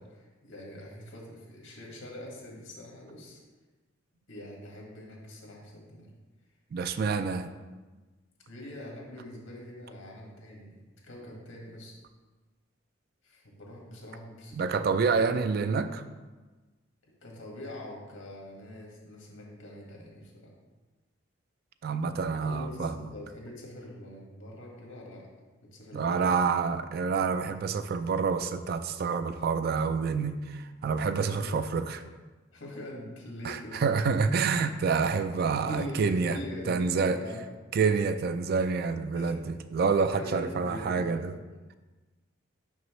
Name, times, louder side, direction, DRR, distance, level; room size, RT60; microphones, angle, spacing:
voice 1, 0.0-3.4 4.3-6.1 8.5-11.9 13.2-15.4 17.2-20.5 22.4-25.3 25.6-26.4 31.3-31.7 32.5-33.8 35.6-37.5 39.1-39.4 39.9-41.2, left 1 dB, 75° left, -2 dB, 1.7 m, -44 dB
voice 2, 6.7-7.5 14.5-16.0 21.8-22.9 25.9-32.0 33.4-36.4 36.7-37.2 37.7-41.3, right 5 dB, 50° right, 10 dB, 0.3 m, -28 dB
6.1 x 5.7 x 3.1 m, 1.3 s
head